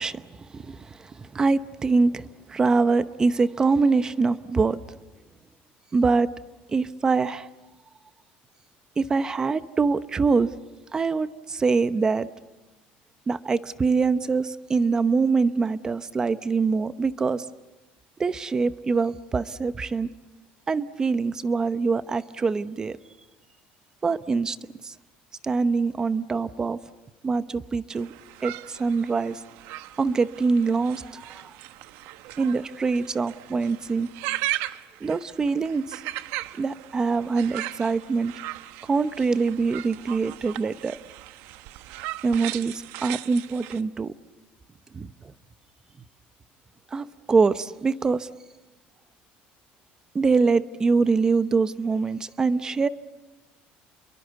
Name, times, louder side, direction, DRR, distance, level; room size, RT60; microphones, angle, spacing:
voice 1, 0.0-4.8 5.9-6.3 6.7-7.5 9.0-10.5 10.9-12.3 13.3-17.4 18.2-20.1 20.7-23.0 24.0-24.6 24.8-24.9 25.4-26.8 27.2-28.1 28.4-29.4 30.0-31.5 32.4-34.1 35.0-36.0 36.6-38.3 38.9-41.0 42.2-44.1 44.9-45.1 46.9-48.3 50.1-52.9, right 4 dB, 20° right, 14 dB, 0.9 m, -24 dB
sound 1, 27.9-43.8, right 16 dB, 80° right, 0.9 m, -37 dB
30.0 x 23.0 x 8.3 m, 1.0 s
cardioid pair, 160°, 4 cm